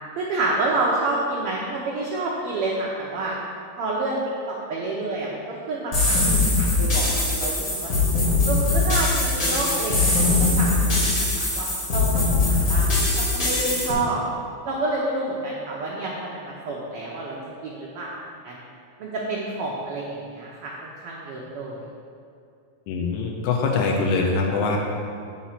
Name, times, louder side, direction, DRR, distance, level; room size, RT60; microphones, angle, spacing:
voice 1, 0.2-3.3 3.8-4.2 4.5-7.9 8.4-14.2 14.6-17.4 17.6-18.2 18.4-18.6 19.0-21.8, right 2 dB, 75° right, -4 dB, 1.3 m, -29 dB
sound 1, 5.9-13.9, left 3 dB, 65° left, 0.8 m, -21 dB
voice 2, 22.9-24.8, left 4 dB, 85° left, 0 dB, 1.9 m, -23 dB
8.4 x 2.9 x 5.7 m, 2.4 s
omnidirectional pair, 3.3 m